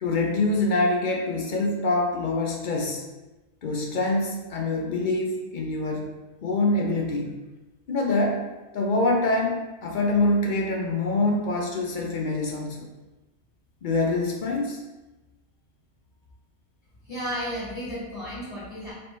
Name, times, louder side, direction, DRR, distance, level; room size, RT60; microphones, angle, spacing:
voice 1, 0.0-3.0 3.6-6.1 6.4-7.3 7.9-8.4 8.7-12.9 13.8-14.8, left 2 dB, 55° left, 0 dB, 0.6 m, -25 dB
voice 2, 17.1-18.9, equal, 35° left, -8 dB, 1.7 m, -33 dB
3.2 x 2.9 x 4.2 m, 1.1 s
omnidirectional pair, 1.1 m